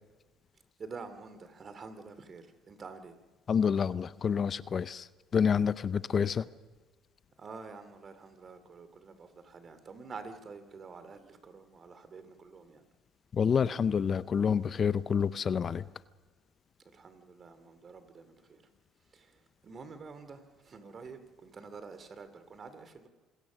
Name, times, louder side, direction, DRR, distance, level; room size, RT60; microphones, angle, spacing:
voice 1, 0.8-3.1 7.4-12.8 16.9-18.6 19.1-23.1, right 4 dB, 40° right, 10 dB, 2.7 m, -48 dB
voice 2, 3.5-6.5 13.3-15.8, left 7 dB, 45° left, 17 dB, 0.6 m, -28 dB
27.0 x 20.5 x 6.3 m, 1.3 s
hypercardioid pair, 65°, 0 cm